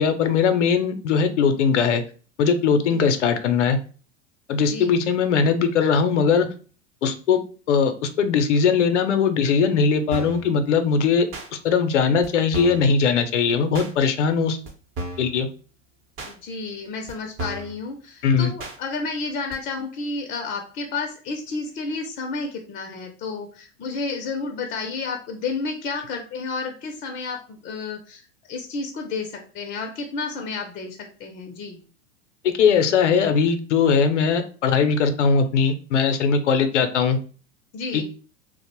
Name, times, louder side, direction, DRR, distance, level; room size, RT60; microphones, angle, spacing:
voice 1, 0.0-2.0 2.4-3.8 4.5-6.5 7.0-7.4 7.7-11.3 11.5-14.6 15.2-15.5 18.2-18.5 32.4-37.2 37.9-38.0, left 6 dB, 85° left, 9 dB, 0.5 m, -20 dB
voice 2, 4.6-5.2 16.3-28.2 28.5-31.8 37.7-38.0, left 4 dB, 25° left, 3 dB, 0.4 m, -31 dB
sound 1, 10.1-10.5 11.3-11.5 12.2-12.3 12.5-12.9 13.7-13.9 14.7-14.8 15.0-15.3 16.2-16.3 17.1-17.2 17.4-17.7 18.6-18.8 19.5-19.6, right 1 dB, 40° right, 0.7 m, -33 dB
2.5 x 2.0 x 2.9 m, 0.39 s
hypercardioid pair, 95°, 35 cm